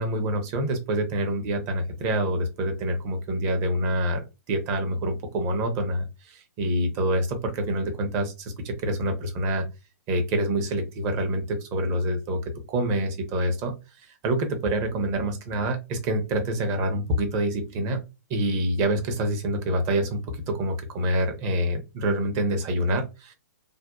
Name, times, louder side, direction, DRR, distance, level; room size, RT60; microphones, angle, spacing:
voice 1, 0.0-9.7 10.1-12.4 12.7-13.7 14.2-18.0 18.3-23.3, right 1 dB, 35° right, 5 dB, 0.7 m, -26 dB
2.6 x 2.2 x 2.3 m, 0.26 s
hypercardioid pair, 130°, 10 cm